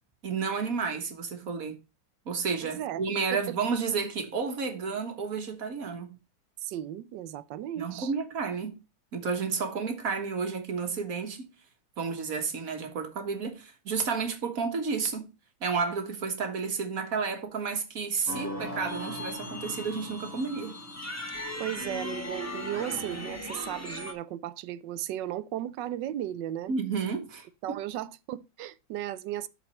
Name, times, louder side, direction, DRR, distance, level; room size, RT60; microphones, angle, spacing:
voice 1, 0.2-1.8 2.3-6.2 7.8-8.8 9.1-11.5 12.0-15.3 15.6-20.8 26.7-27.5, right 5 dB, 50° right, 1.7 m, -31 dB
voice 2, 2.6-3.0 3.3-3.6 6.6-8.1 21.6-26.7 27.6-29.5, right 12 dB, 75° right, 1.2 m, -35 dB
sound 1, 18.3-24.1, left 1 dB, 10° left, 0.9 m, -37 dB
12.0 x 4.4 x 4.2 m
omnidirectional pair, 2.1 m